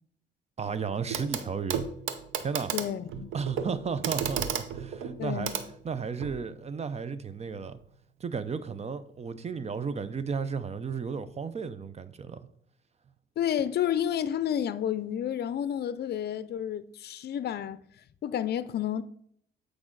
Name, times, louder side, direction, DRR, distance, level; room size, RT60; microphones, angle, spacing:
voice 1, 0.6-1.8 2.4-2.7 3.3-5.5 5.8-7.8 8.2-12.5, right 6 dB, 35° right, 0.6 m, -33 dB
Clock, 1.1-1.4 1.7-6.4 7.6-7.7, right 8 dB, 85° right, 0.8 m, -34 dB
voice 2, 2.7-3.3 5.2-5.6 13.4-17.8 18.2-19.0, left 10 dB, 55° left, 0.5 m, -30 dB
8.5 x 4.8 x 3.9 m
cardioid pair, 90°, 20 cm